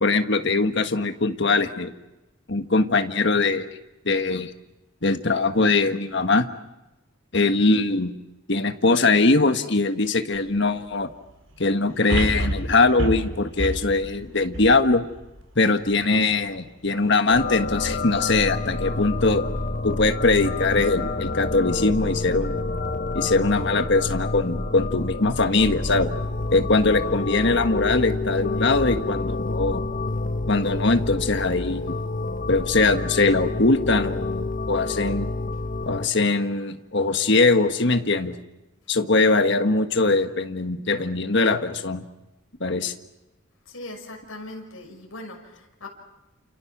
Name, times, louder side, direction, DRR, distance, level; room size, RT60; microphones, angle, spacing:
voice 1, 0.0-1.9 2.5-3.7 4.0-4.5 5.0-6.5 7.3-8.1 8.5-11.1 11.6-15.1 15.5-19.4 19.8-22.6 23.1-26.1 26.5-29.8 30.5-32.0 32.5-35.3 35.8-38.4 38.9-42.0 42.6-42.9, left 3 dB, 55° left, 8 dB, 1.5 m, -21 dB
sound 1, 10.4-10.5 12.1-15.4 15.9-16.0, right 1 dB, 80° right, 5.5 m, -28 dB
sound 2, 17.3-36.1, left 2 dB, 40° left, 0.8 m, -28 dB
voice 2, 43.6-45.9, left 2 dB, 70° left, 1 dB, 6.4 m, -39 dB
29.5 x 28.5 x 6.1 m, 0.99 s
head